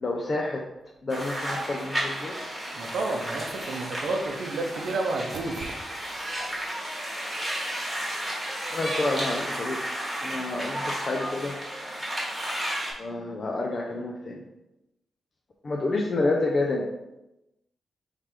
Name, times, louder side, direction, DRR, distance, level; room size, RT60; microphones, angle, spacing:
voice 1, 0.0-0.6 1.0-2.4 8.7-9.8 10.2-11.6 13.0-14.4 15.6-16.9, left 2 dB, 35° left, 0 dB, 0.4 m, -29 dB
sound 1, 1.1-12.9, equal, ahead, 1.2 m, -33 dB
voice 2, 2.7-5.8, right 2 dB, 75° right, 3 dB, 0.7 m, -30 dB
4.4 x 3.2 x 3.6 m, 0.94 s
wide cardioid pair, 160°, 0 cm